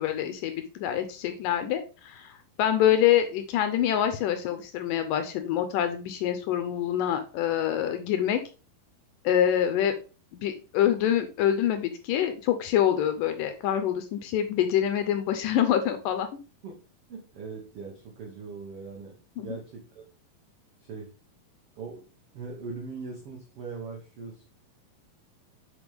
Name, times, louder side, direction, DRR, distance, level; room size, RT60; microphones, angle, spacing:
voice 1, 0.0-8.4 9.2-10.0 10.3-16.3 19.4-19.5, left 10 dB, 80° left, 8 dB, 2.0 m, -26 dB
voice 2, 17.1-20.0 20.8-21.1 21.8-22.0 22.3-24.5, right 4 dB, 90° right, 1 dB, 1.2 m, -40 dB
6.5 x 5.2 x 3.5 m, 0.34 s
omnidirectional pair, 4.4 m